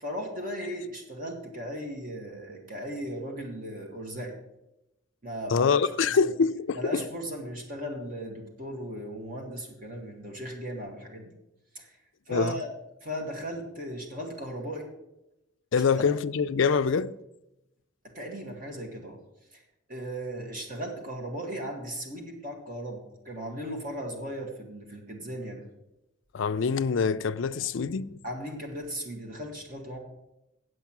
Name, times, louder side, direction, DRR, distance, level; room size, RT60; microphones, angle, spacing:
voice 1, 0.0-4.3 5.2-5.7 6.2-6.3 6.8-11.3 11.7-11.9 12.3-12.7 13.0-14.9 18.1-19.2 19.5-19.6 19.9-25.7 28.2-30.0, right 1 dB, 40° right, 1.7 m, -37 dB
voice 2, 5.5-7.0 12.3-12.6 15.7-17.1 26.3-28.2, left 5 dB, 65° left, 0.4 m, -25 dB
8.2 x 8.2 x 5.9 m
head